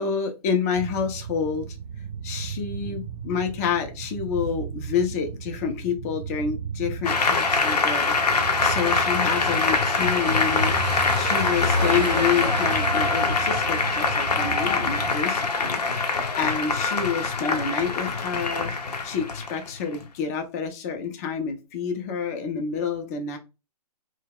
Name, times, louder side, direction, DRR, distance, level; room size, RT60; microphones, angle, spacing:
voice 1, 0.0-1.8 2.2-18.7 19.0-23.4, left 6 dB, 25° left, 5 dB, 0.4 m, -28 dB
sound 1, 0.7-15.1, right 7 dB, 30° right, 0.5 m, -35 dB
Applause, 7.0-20.0, left 4 dB, 75° left, 0.6 m, -24 dB
Car passing by / Engine, 8.4-15.1, right 1 dB, 85° right, 0.6 m, -33 dB
2.3 x 2.0 x 3.5 m, 0.28 s
figure-of-eight pair, 130°, 21 cm